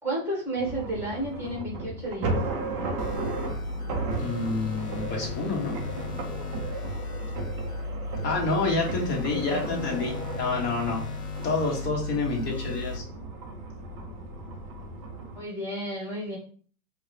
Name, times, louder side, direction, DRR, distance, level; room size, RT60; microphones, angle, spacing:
voice 1, 0.0-2.4 9.3-10.1 15.3-16.4, right 1 dB, 5° right, -4 dB, 1.4 m, -32 dB
Robotic Drone, 0.6-15.4, right 3 dB, 20° right, 0.5 m, -35 dB
sound 1, 3.0-13.0, left 3 dB, 60° left, 1.0 m, -35 dB
voice 2, 4.2-5.8 8.2-11.0 11.4-13.0, left 3 dB, 20° left, 0 dB, 1.0 m, -28 dB
4.6 x 2.2 x 2.7 m, 0.43 s
figure-of-eight pair, 115°, 48 cm